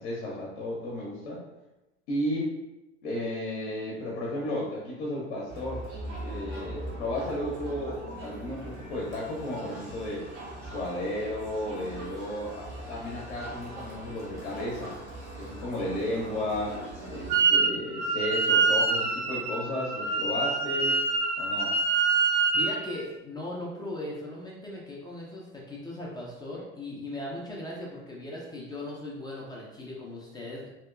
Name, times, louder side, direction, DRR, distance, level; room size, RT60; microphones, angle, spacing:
voice 1, 0.0-1.4 2.1-2.6 3.0-5.8 6.2-10.3 10.6-14.9 15.4-16.8 17.1-21.0 21.4-21.7, left 1 dB, 60° left, -4 dB, 0.8 m, -33 dB
Crowd, 5.5-17.4, right 1 dB, 75° right, 1.0 m, -41 dB
Wind instrument woodwind instrument, 17.3-17.7 18.0-22.8, right 4 dB, 40° right, 0.5 m, -25 dB
voice 2, 22.5-30.7, left 1 dB, 10° left, -4 dB, 0.5 m, -38 dB
2.8 x 2.8 x 2.3 m, 0.98 s
figure-of-eight pair, 70°, 35 cm